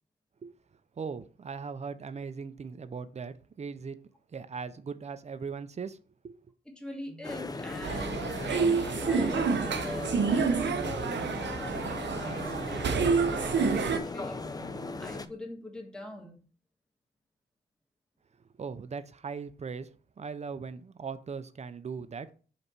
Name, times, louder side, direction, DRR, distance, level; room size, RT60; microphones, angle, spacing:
voice 1, 1.0-4.0 4.3-6.0 6.2-6.5 18.6-19.9 20.2-22.3, right 5 dB, 40° right, 0.5 m, -39 dB
voice 2, 6.8-14.5 15.0-16.4, left 1 dB, 5° left, 1.4 m, -44 dB
sound 1, 7.0-15.3, left 2 dB, 50° left, 2.1 m, -48 dB
sound 2, 7.2-15.3, left 3 dB, 20° left, 0.4 m, -38 dB
sound 3, 7.8-14.0, right 5 dB, 90° right, 0.8 m, -28 dB
5.5 x 4.1 x 6.0 m
wide cardioid pair, 160°, 18 cm